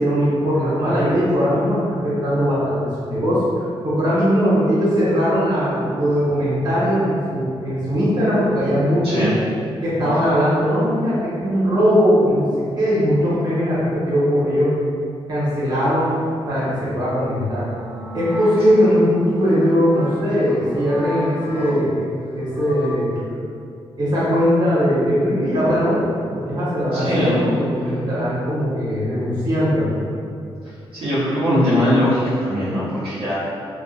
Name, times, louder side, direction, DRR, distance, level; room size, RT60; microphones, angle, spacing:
voice 1, 0.0-9.2 9.8-14.7 15.3-16.2 16.4-17.6 18.1-23.1 24.0-29.9, equal, 45° right, -10 dB, 0.9 m, -19 dB
voice 2, 9.0-9.4 10.0-10.3 26.9-27.4 30.9-33.4, equal, 65° right, -13 dB, 0.6 m, -20 dB
sound 1, 16.1-22.9, left 1 dB, 15° right, 0.6 m, -35 dB
2.4 x 2.1 x 2.5 m, 2.4 s
wide cardioid pair, 155°, 10 cm